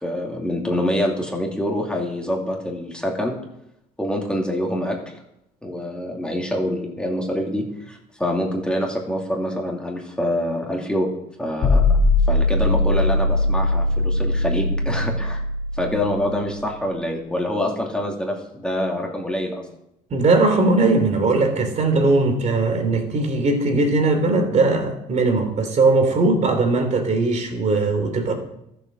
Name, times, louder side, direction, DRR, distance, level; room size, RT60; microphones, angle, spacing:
voice 1, 0.0-3.4 4.0-5.0 5.6-11.1 11.4-12.0 12.3-15.4 15.7-19.7, left 1 dB, 5° left, -1 dB, 2.6 m, -25 dB
sound 1, 11.6-16.7, left 2 dB, 60° left, 2.4 m, -20 dB
voice 2, 20.1-28.3, right 3 dB, 45° right, 5 dB, 3.0 m, -19 dB
13.5 x 7.8 x 6.3 m, 0.80 s
cardioid pair, 110°, 17 cm